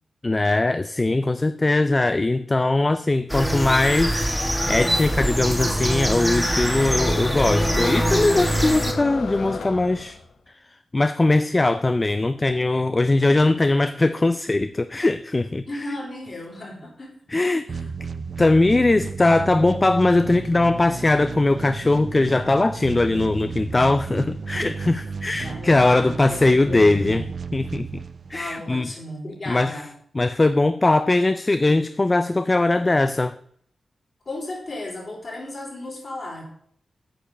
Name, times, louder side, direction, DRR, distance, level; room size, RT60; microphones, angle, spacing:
voice 1, 0.2-10.2 10.9-15.6 17.3-17.6 18.4-27.2 27.5-28.0 28.3-28.9 29.5-29.7 30.2-33.3, left 2 dB, 25° left, 0.4 m, -20 dB
sound 1, 3.3-8.9, equal, ahead, 1.4 m, -23 dB
sound 2, 5.8-10.3, left 4 dB, 75° left, 1.0 m, -33 dB
voice 2, 15.6-17.1 17.7-17.9 25.2-27.3 28.3-29.9 34.3-36.4, left 1 dB, 40° left, 4.1 m, -35 dB
sound 3, 17.7-28.6, right 5 dB, 55° right, 0.5 m, -33 dB
8.6 x 5.2 x 6.6 m
wide cardioid pair, 100°, 0 cm